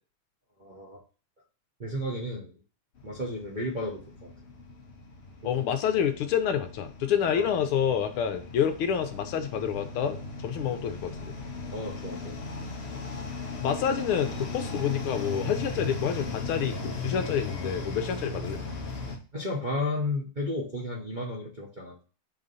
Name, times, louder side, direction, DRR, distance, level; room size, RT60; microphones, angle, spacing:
voice 1, 0.6-1.0 1.8-2.6 3.0-4.3 5.4-5.7 7.3-7.5 11.7-12.4 14.7-14.8 19.3-22.0, left 1 dB, 30° right, -4 dB, 0.9 m, -33 dB
sound 1, 3.0-19.2, left 3 dB, 50° left, 0.7 m, -37 dB
voice 2, 5.4-10.2 10.4-11.3 13.6-18.6, left 8 dB, 80° left, 7 dB, 1.7 m, -28 dB
4.8 x 3.9 x 5.4 m, 0.36 s
omnidirectional pair, 2.4 m